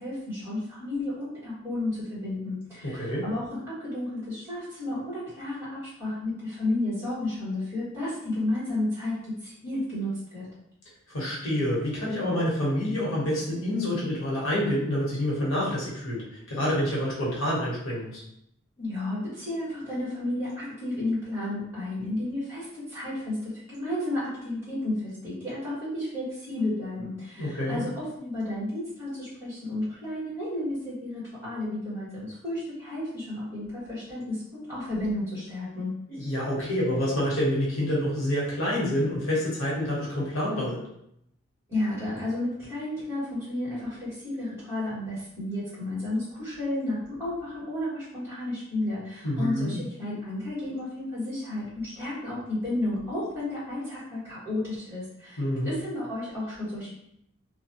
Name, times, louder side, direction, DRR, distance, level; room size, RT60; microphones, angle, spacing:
voice 1, 0.0-10.5 18.8-35.9 41.7-56.9, left 1 dB, 10° right, -11 dB, 1.5 m, -32 dB
voice 2, 2.8-3.2 11.1-18.2 27.4-27.8 36.2-40.8 49.2-49.8 55.4-55.7, left 1 dB, 80° left, -6 dB, 1.0 m, -27 dB
2.6 x 2.2 x 2.8 m, 0.76 s
head